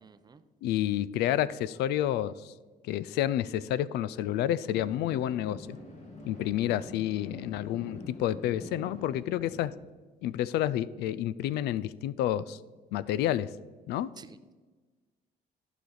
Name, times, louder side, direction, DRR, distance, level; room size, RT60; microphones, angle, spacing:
voice 1, 0.0-0.4 14.2-14.5, right 5 dB, 25° right, 12 dB, 0.5 m, -51 dB
voice 2, 0.6-2.5 2.9-5.8 6.3-9.7 10.2-12.6 12.9-13.5 13.9-14.1, left 12 dB, 80° left, 18 dB, 0.4 m, -29 dB
sound 1, 4.7-9.7, left 2 dB, 40° left, 1.8 m, -46 dB
14.0 x 5.0 x 4.0 m, 1.3 s
cardioid pair, 110°, 17 cm